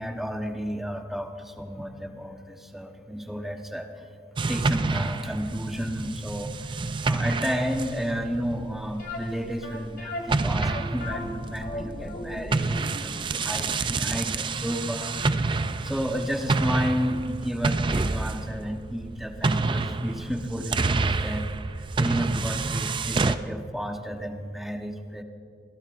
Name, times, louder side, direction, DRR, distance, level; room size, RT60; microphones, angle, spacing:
voice 1, 0.0-4.1 4.5-15.2 15.8-21.5 22.0-25.2, equal, ahead, 3 dB, 1.0 m, -32 dB
sound 1, 4.4-10.0 10.3-23.4, right 3 dB, 25° right, 0.4 m, -28 dB
sound 2, 9.0-15.9 16.1-16.2 16.8-16.9 17.2-17.3, left 2 dB, 60° left, 2.3 m, -38 dB
27.0 x 16.0 x 2.5 m, 2.2 s
head